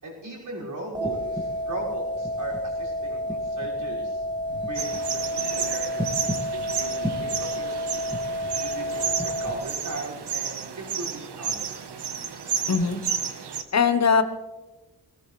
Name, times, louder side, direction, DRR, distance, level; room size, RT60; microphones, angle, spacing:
voice 1, 0.0-4.3 4.7-8.0 8.6-11.9, right 2 dB, 50° right, -4 dB, 6.0 m, -38 dB
sound 1, 0.9-9.5, equal, 10° right, 2.3 m, -30 dB
sound 2, 4.7-13.6, right 7 dB, 85° right, 1.3 m, -32 dB
voice 2, 12.7-13.0 13.7-14.2, left 5 dB, 40° left, 9 dB, 1.1 m, -20 dB
19.5 x 18.5 x 3.3 m, 1.1 s
wide cardioid pair, 180°, 39 cm